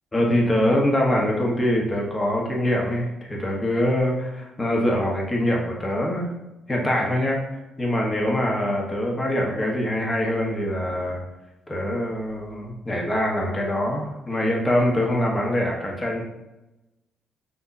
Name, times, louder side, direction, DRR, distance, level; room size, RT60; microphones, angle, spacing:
voice 1, 0.1-6.3 6.7-7.4 7.8-11.2 11.7-16.2, left 1 dB, 20° left, -1 dB, 1.2 m, -24 dB
6.2 x 2.7 x 2.7 m, 0.97 s
cardioid pair, 90°, 0 cm